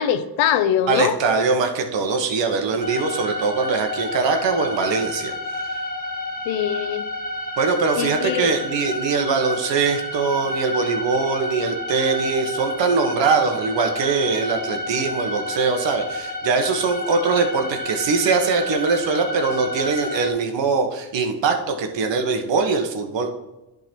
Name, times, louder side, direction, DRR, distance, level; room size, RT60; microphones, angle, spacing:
voice 1, 0.0-1.1 6.5-7.0 8.0-8.5, left 9 dB, 85° left, 11 dB, 0.8 m, -22 dB
voice 2, 0.9-5.3 7.6-23.3, right 4 dB, 70° right, 5 dB, 1.4 m, -22 dB
sound 1, 2.8-20.3, left 1 dB, 20° left, 1.5 m, -30 dB
10.5 x 3.9 x 4.5 m, 0.99 s
cardioid pair, 75°, 45 cm